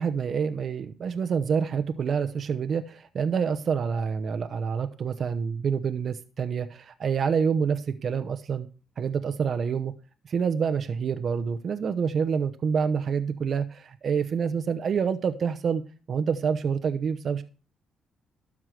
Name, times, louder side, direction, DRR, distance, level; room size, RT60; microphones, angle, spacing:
voice 1, 0.0-8.7 9.0-9.9 10.2-15.8 16.1-17.4, right 6 dB, 55° right, 0.8 m, -27 dB
12.5 x 4.9 x 7.6 m
cardioid pair, 90°, 0 cm